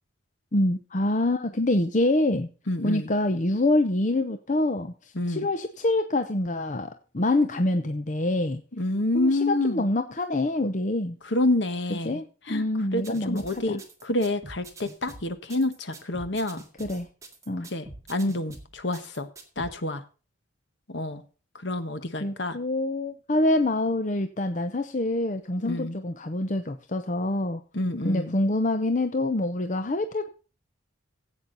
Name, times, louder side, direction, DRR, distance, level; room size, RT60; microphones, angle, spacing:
voice 1, 0.5-2.5 2.8-8.6 9.1-11.2 12.0-13.8 16.8-17.1 17.5-17.7 22.2-27.6 28.0-30.3, left 2 dB, 40° left, 8 dB, 0.7 m, -26 dB
voice 2, 2.7-3.1 5.1-5.5 8.8-9.8 11.3-12.2 12.5-12.6 12.9-16.6 17.7-19.3 19.6-20.0 20.9-21.2 21.6-22.6 25.6-26.0 27.7-28.3, left 2 dB, 55° left, 10 dB, 1.2 m, -28 dB
sound 1, 13.0-19.7, right 2 dB, 15° right, 1.9 m, -45 dB
15.0 x 8.5 x 4.0 m, 0.35 s
head